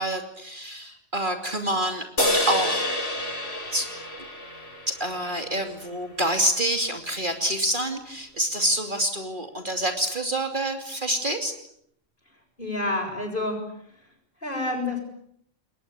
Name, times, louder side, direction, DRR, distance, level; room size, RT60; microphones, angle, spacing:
voice 1, 0.0-2.8 3.7-3.9 4.9-11.5, right 1 dB, 40° right, 4 dB, 2.9 m, -27 dB
sound 1, 2.2-5.7, left 1 dB, 60° left, 5.9 m, -28 dB
voice 2, 12.6-13.6 14.4-15.0, left 2 dB, 40° left, 4 dB, 7.7 m, -28 dB
29.5 x 22.0 x 8.7 m, 0.71 s
omnidirectional pair, 1.4 m